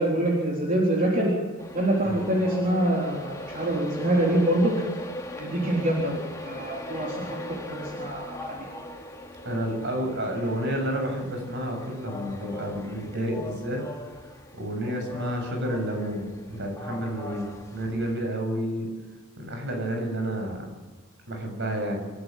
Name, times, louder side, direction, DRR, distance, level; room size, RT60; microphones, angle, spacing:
voice 1, 0.0-1.3 1.7-4.7 5.4-6.2 6.4-8.7, right 1 dB, 40° right, -3 dB, 4.0 m, -25 dB
Train, 1.6-18.2, left 1 dB, 15° left, 2.4 m, -40 dB
voice 2, 9.4-13.8 14.5-17.5 17.7-18.9 19.4-20.7 21.3-22.0, equal, 55° right, 3 dB, 7.4 m, -30 dB
29.0 x 13.0 x 7.5 m, 1.3 s
head